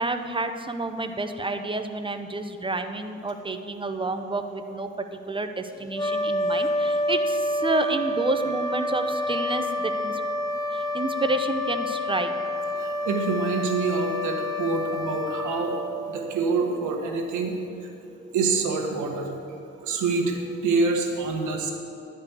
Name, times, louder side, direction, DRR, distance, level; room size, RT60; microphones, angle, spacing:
voice 1, 0.0-4.9 5.3-10.2 10.7-12.3 17.7-18.3 19.5-20.0, right 2 dB, 15° right, 8 dB, 0.8 m, -29 dB
sound 1, 5.9-16.5, left 1 dB, 10° left, 0.8 m, -28 dB
voice 2, 12.7-15.8 16.1-17.5 17.8-17.9 18.3-19.3 19.8-20.4 20.6-21.7, right 4 dB, 75° right, 3 dB, 1.6 m, -26 dB
11.0 x 5.4 x 8.2 m, 2.8 s
cardioid pair, 90°, 30 cm